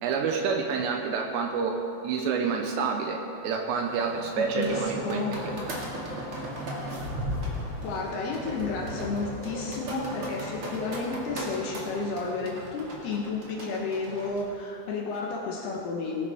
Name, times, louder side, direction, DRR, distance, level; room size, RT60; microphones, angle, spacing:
voice 1, 0.0-1.8 2.0-5.7, right 5 dB, 80° right, 3 dB, 2.7 m, -28 dB
sound 1, 3.8-13.1, equal, 30° left, 2.6 m, -46 dB
sound 2, 4.3-14.4, equal, 50° right, 1.7 m, -36 dB
voice 2, 4.5-5.4 7.8-16.3, left 3 dB, 70° left, -1 dB, 2.7 m, -32 dB
19.5 x 11.5 x 3.5 m, 2.6 s
omnidirectional pair, 5.6 m